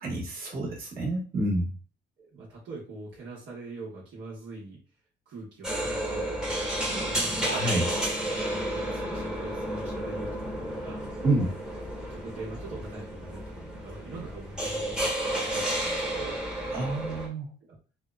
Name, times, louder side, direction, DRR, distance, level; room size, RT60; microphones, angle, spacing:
voice 1, 0.0-1.7 7.4-7.9 11.2-11.5 16.7-17.5, right 1 dB, 50° right, -3 dB, 1.3 m, -28 dB
voice 2, 2.2-4.8 5.3-7.9 8.5-11.1 12.0-16.4 17.7-17.8, right 3 dB, 70° right, -6 dB, 1.1 m, -43 dB
sound 1, 5.6-17.3, right 1 dB, 5° right, 0.9 m, -32 dB
2.7 x 2.0 x 2.3 m, 0.37 s
cardioid pair, 90°, 20 cm